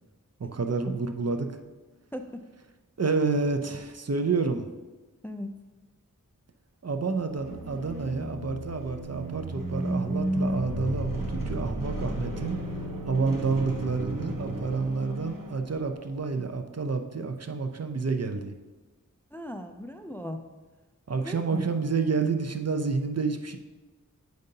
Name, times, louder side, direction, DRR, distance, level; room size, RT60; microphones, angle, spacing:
voice 1, 0.4-1.5 3.0-4.7 6.8-12.6 13.1-18.5 21.1-23.6, right 4 dB, 50° right, 6 dB, 0.5 m, -29 dB
voice 2, 2.1-2.4 5.2-5.5 19.3-20.4 21.2-21.7, equal, 5° left, 6 dB, 0.4 m, -37 dB
sound 1, 7.2-16.0, right 1 dB, 75° right, 1.0 m, -33 dB
7.8 x 5.2 x 2.7 m, 1.2 s
wide cardioid pair, 45°, 33 cm